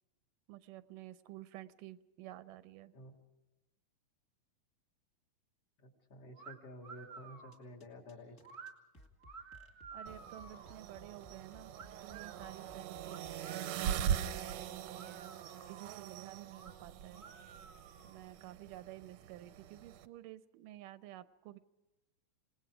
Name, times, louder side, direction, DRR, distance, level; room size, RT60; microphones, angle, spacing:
voice 1, 0.5-2.9 9.9-11.7 12.0-15.4 15.7-17.3 18.0-21.6, right 14 dB, 85° right, 14 dB, 2.4 m, -51 dB
voice 2, 5.8-8.4, left 1 dB, 50° left, 0 dB, 3.7 m, -52 dB
sound 1, 6.4-6.5 6.8-7.6 8.4-8.7 9.2-10.7 11.7-12.6 13.1-14.0 14.4-14.5 14.9-16.0 16.5-16.7 17.1-18.2, right 5 dB, 45° right, 1.3 m, -53 dB
sound 2, 7.5-14.2, equal, 25° left, 2.2 m, -60 dB
sound 3, 10.1-20.1, right 9 dB, 70° right, 1.8 m, -41 dB
28.0 x 19.0 x 4.9 m, 1.1 s
omnidirectional pair, 3.7 m